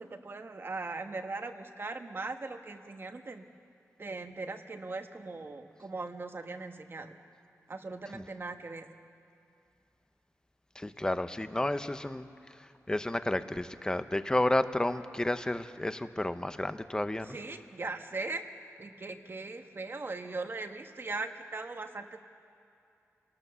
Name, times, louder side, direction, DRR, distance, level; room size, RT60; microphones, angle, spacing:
voice 1, 0.0-3.4 4.0-7.1 7.7-8.9 17.3-18.4 18.8-22.2, right 3 dB, 40° right, 6 dB, 1.2 m, -39 dB
voice 2, 10.7-17.4, left 1 dB, 15° left, 11 dB, 0.8 m, -31 dB
28.5 x 18.5 x 7.0 m, 2.5 s
wide cardioid pair, 110°, 6 cm